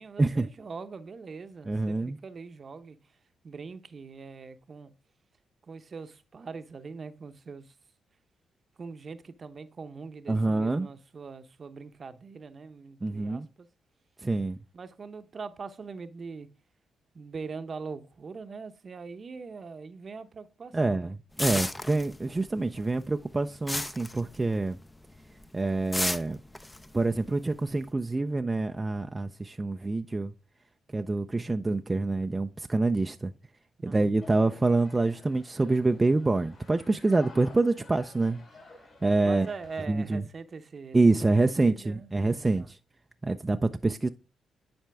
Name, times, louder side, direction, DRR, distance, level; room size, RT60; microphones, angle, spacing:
voice 1, 0.0-3.0 3.4-4.9 5.7-7.7 8.8-13.7 14.7-16.5 17.1-21.1 33.8-34.0 39.2-41.2 41.6-42.7, right 4 dB, 50° right, 0.8 m, -42 dB
voice 2, 1.7-2.2 10.3-10.9 13.0-13.5 14.2-14.6 20.7-24.8 25.5-26.4 26.9-30.3 30.9-33.3 33.8-38.4 39.0-39.5 39.9-40.2 40.9-42.8 43.2-44.1, right 3 dB, 25° right, 0.5 m, -26 dB
sound 1, 21.4-22.5 22.8-24.8 25.2-25.4 25.9-27.8, left 1 dB, 15° left, 0.7 m, -33 dB
sound 2, 34.2-39.8, left 3 dB, 60° left, 4.1 m, -52 dB
10.5 x 4.4 x 3.4 m
supercardioid pair, 55°, 0 cm